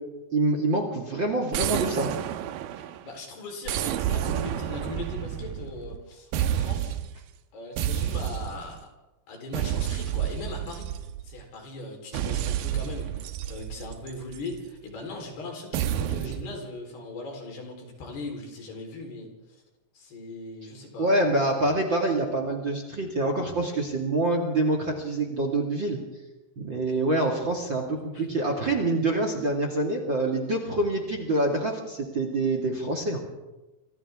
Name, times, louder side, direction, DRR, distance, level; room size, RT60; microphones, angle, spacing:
voice 1, 0.3-2.1 21.0-26.0 26.6-33.2, right 2 dB, 35° right, 2 dB, 2.2 m, -26 dB
sound 1, 1.5-3.1 3.7-6.0 6.3-7.2 7.8-8.8 9.5-11.4 12.1-14.5 15.7-16.5, right 11 dB, 75° right, 2.3 m, -30 dB
voice 2, 2.8-7.0 7.5-8.8 9.3-10.9 11.2-19.3 19.9-21.1 26.9-27.0 28.1-28.4, left 2 dB, 75° left, 2 dB, 6.1 m, -39 dB
29.0 x 25.0 x 3.7 m, 1.0 s
omnidirectional pair, 4.7 m